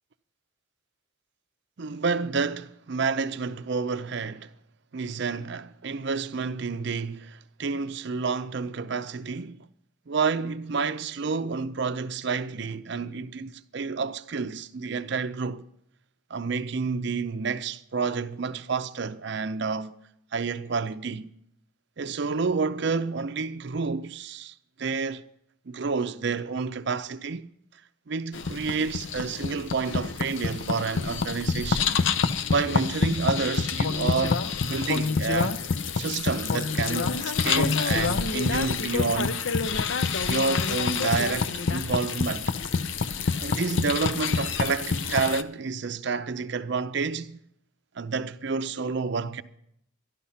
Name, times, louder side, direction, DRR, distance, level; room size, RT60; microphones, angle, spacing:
voice 1, 1.8-4.5 4.9-9.7 10.1-15.7 16.3-19.9 20.3-21.3 22.0-25.3 25.7-27.5 28.1-32.0 32.5-35.6 35.9-39.4 40.2-42.5 43.4-47.4 48.0-49.4, right 4 dB, 55° right, 0.5 m, -29 dB
sound 1, 28.3-45.4, left 5 dB, 65° left, 0.6 m, -27 dB
12.5 x 11.5 x 5.7 m
head